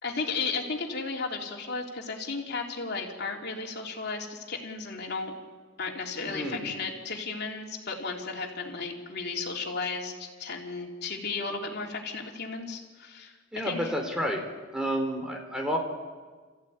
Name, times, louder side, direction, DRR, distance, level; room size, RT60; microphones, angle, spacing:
voice 1, 0.0-5.3 5.8-13.3 13.7-13.8, left 4 dB, 55° left, 1 dB, 3.4 m, -34 dB
voice 2, 6.3-6.7 13.5-14.4 14.7-15.8, equal, 5° right, 2 dB, 4.0 m, -30 dB
29.0 x 15.0 x 9.5 m, 1.5 s
head